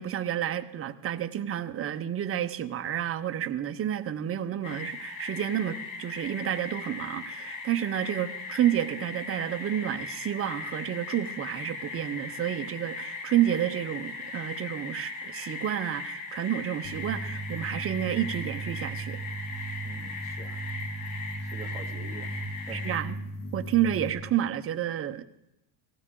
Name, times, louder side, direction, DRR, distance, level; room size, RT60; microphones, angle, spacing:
voice 1, 0.0-19.2 22.7-23.2 23.5-25.2, right 11 dB, 30° right, 0.7 m, -30 dB
sound 1, 4.6-23.0, left 4 dB, 75° left, 3.7 m, -39 dB
sound 2, 16.8-24.1, right 2 dB, 40° left, 5.4 m, -37 dB
voice 2, 19.8-20.6 21.4-22.3 22.7-23.0, right 4 dB, 5° right, 1.9 m, -45 dB
18.0 x 16.5 x 3.7 m
cardioid pair, 155°, 45 cm